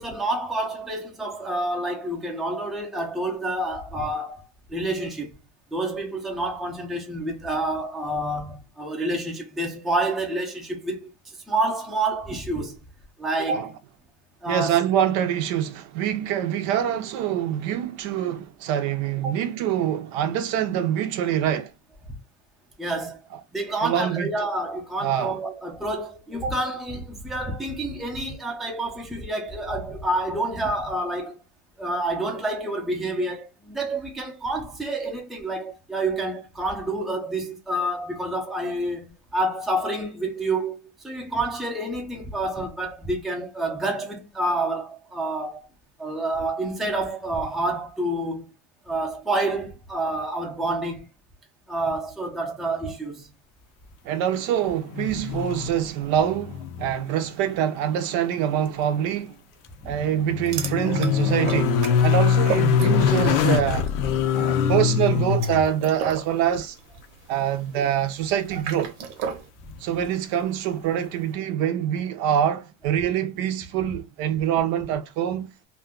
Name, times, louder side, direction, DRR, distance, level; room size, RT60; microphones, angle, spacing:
voice 1, 0.0-5.4 5.7-12.8 13.2-13.8 14.4-14.8 19.2-19.4 22.8-23.2 23.5-31.4 31.8-45.7 46.0-48.5 48.9-51.0 51.7-53.3 55.1-55.2 59.8-59.9, right 2 dB, ahead, 0.5 m, -28 dB
voice 2, 14.5-21.7 23.8-24.3 25.0-25.4 54.0-59.3 59.8-63.9 64.3-66.8 67.3-68.9 69.8-75.5, right 10 dB, 60° right, 0.6 m, -25 dB
sound 1, 54.9-55.9 56.2-57.0 57.2-57.3 59.8-65.7 68.6-68.7, left 7 dB, 90° left, 0.6 m, -23 dB
sound 2, 60.4-63.4 63.6-64.0 65.1-69.5, right 7 dB, 85° right, 0.9 m, -34 dB
2.6 x 2.3 x 3.5 m
cardioid pair, 145°, 40 cm